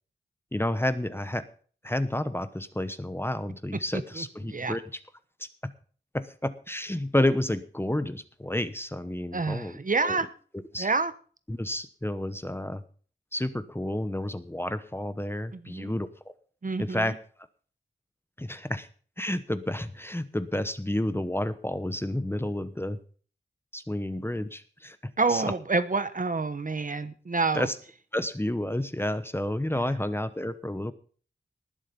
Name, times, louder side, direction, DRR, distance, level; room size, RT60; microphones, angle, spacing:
voice 1, 0.5-1.5 1.8-4.8 5.6-5.7 6.1-10.2 10.7-10.9 11.5-12.8 13.3-16.1 16.8-17.2 18.4-18.9 19.2-23.0 23.7-25.5 27.5-27.8 28.1-30.9, left 1 dB, 10° left, 12 dB, 0.9 m, -30 dB
voice 2, 3.9-4.8 9.3-10.3 10.8-11.1 15.5-15.9 16.6-17.1 25.2-27.7, right 3 dB, 45° right, 12 dB, 1.1 m, -28 dB
19.5 x 7.5 x 5.3 m, 0.42 s
wide cardioid pair, 100°, 19 cm